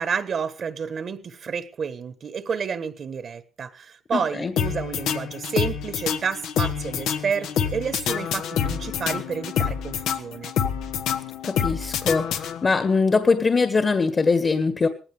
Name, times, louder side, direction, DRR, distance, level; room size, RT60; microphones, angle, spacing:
voice 1, 0.0-10.5, right 6 dB, 55° right, 1.3 m, -30 dB
voice 2, 4.1-4.5 11.4-14.9, left 4 dB, 35° left, 1.7 m, -22 dB
sound 1, 4.6-12.9, left 8 dB, 85° left, 1.3 m, -27 dB
19.0 x 16.0 x 3.4 m
cardioid pair, 90°, 0 cm